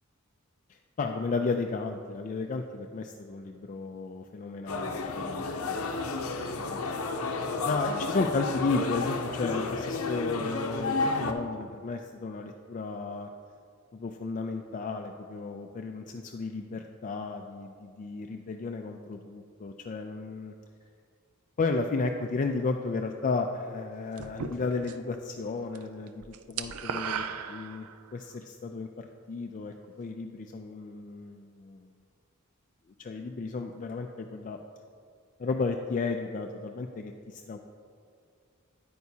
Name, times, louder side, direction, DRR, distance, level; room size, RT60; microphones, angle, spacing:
voice 1, 0.7-5.9 6.7-13.3 13.9-20.5 21.6-27.9 28.1-31.9 33.0-34.6 35.4-37.6, left 3 dB, 35° left, 4 dB, 0.4 m, -33 dB
sound 1, 4.7-11.3, left 3 dB, 70° left, 0.7 m, -31 dB
sound 2, 24.2-25.2 25.5-25.8 26.1-28.2, right 7 dB, 85° right, 0.4 m, -36 dB
9.3 x 9.1 x 2.8 m, 2.2 s
head